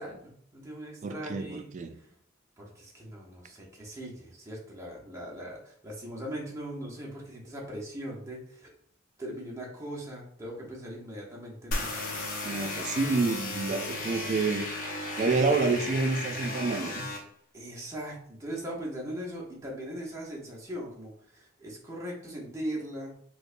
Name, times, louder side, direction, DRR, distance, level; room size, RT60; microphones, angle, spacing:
voice 1, 0.0-1.7 1.9-2.1 2.6-8.7 9.2-12.1 13.7-13.8 15.1-15.5 17.5-23.1, right 1 dB, 15° right, 0.8 m, -40 dB
voice 2, 1.0-1.9 12.4-14.7 15.2-17.1, right 3 dB, 40° right, 0.3 m, -28 dB
sound 1, 11.7-17.2, left 2 dB, 50° left, 0.8 m, -35 dB
4.5 x 2.2 x 2.5 m
head